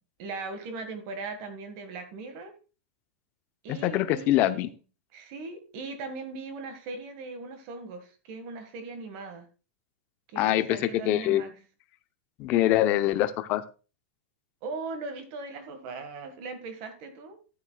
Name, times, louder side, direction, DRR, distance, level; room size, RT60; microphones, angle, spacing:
voice 1, 0.2-2.5 3.6-4.7 5.1-9.5 10.3-11.5 14.6-17.4, right 3 dB, 30° right, 9 dB, 1.5 m, -39 dB
voice 2, 3.7-4.7 10.4-11.4 12.4-13.6, left 14 dB, 25° left, 12 dB, 0.6 m, -24 dB
13.0 x 8.9 x 2.2 m, 0.33 s
supercardioid pair, 180°, 7 cm